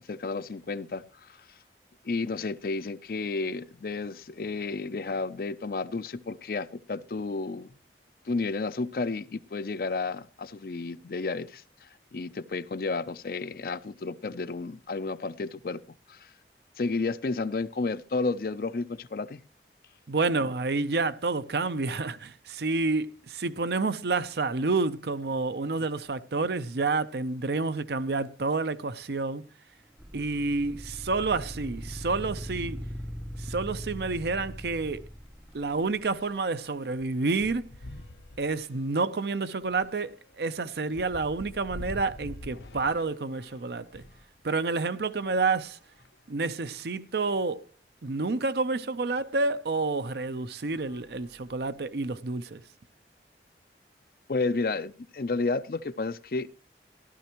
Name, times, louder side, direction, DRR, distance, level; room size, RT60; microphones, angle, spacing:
voice 1, 0.0-1.5 2.0-7.7 8.3-15.8 16.1-16.3 16.8-19.4 54.3-56.5, left 3 dB, 55° left, 0.5 m, -32 dB
voice 2, 20.1-29.4 30.1-32.8 33.4-35.1 35.5-37.6 38.4-44.0 44.4-45.8 46.3-47.6 48.0-52.6, right 3 dB, 65° right, 0.6 m, -29 dB
sound 1, 30.0-36.2, equal, 5° right, 0.6 m, -40 dB
sound 2, 34.0-34.1 34.4-34.5 34.8-44.3 45.0-46.4 47.0-47.1 47.4-47.5 49.2-49.3 49.9-50.1 50.6-51.9, left 1 dB, 85° left, 0.9 m, -48 dB
15.0 x 12.5 x 3.0 m
head